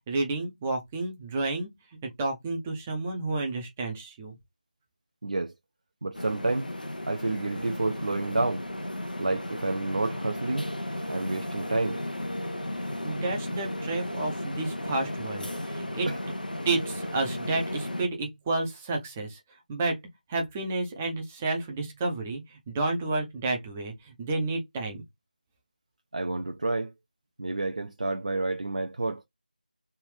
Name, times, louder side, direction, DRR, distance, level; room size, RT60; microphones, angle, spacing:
voice 1, 0.1-1.7 2.0-4.4 13.0-16.1 16.6-19.4 19.7-20.0 20.3-25.0, right 2 dB, 10° right, 0.6 m, -31 dB
voice 2, 5.2-5.5 6.0-6.7 7.1-8.6 9.2-10.7 11.1-12.0 16.1-16.2 26.1-26.9 27.4-29.2, right 2 dB, 55° right, 0.5 m, -29 dB
sound 1, 6.1-18.1, left 1 dB, 85° left, 0.8 m, -34 dB
3.4 x 2.6 x 3.1 m
figure-of-eight pair, 165°, 5 cm